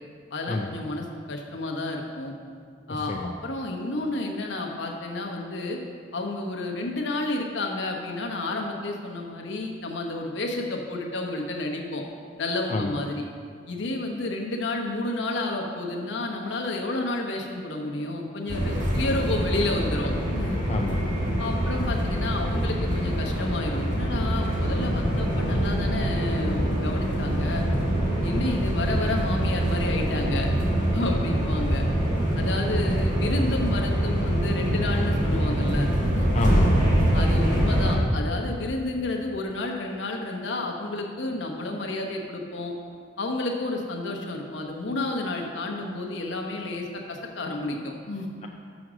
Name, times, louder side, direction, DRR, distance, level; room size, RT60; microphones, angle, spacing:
voice 1, 0.3-2.3 2.9-5.8 6.1-12.0 12.4-13.2 13.7-20.6 21.4-27.7 28.2-30.5 30.9-31.8 32.4-36.3 37.1-42.7 43.2-48.3, left 2 dB, 65° left, 1 dB, 1.0 m, -31 dB
voice 2, 2.9-3.3 12.7-12.9 20.7-21.1 32.8-32.9 36.3-36.8 48.4-48.5, left 2 dB, 35° left, 1 dB, 0.4 m, -29 dB
sound 1, 18.5-38.0, equal, 40° right, 1.7 m, -24 dB
6.2 x 6.2 x 6.2 m, 2.1 s
head